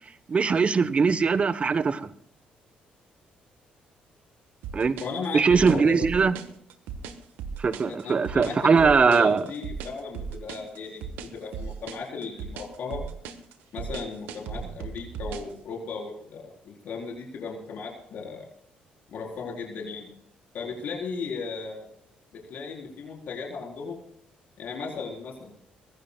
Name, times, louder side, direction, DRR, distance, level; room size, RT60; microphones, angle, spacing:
voice 1, 0.3-2.1 4.7-5.0 5.3-6.3 7.6-9.5, right 5 dB, 40° right, 14 dB, 1.0 m, -21 dB
sound 1, 4.6-15.5, right 6 dB, 85° right, 1.3 m, -37 dB
voice 2, 5.0-6.3 7.8-11.0 11.3-13.1 13.7-18.4 19.1-20.1 20.5-21.9 22.3-24.0 24.6-25.5, left 4 dB, 65° left, -1 dB, 4.2 m, -36 dB
23.0 x 15.5 x 2.3 m, 0.70 s
supercardioid pair, 75°, 3 cm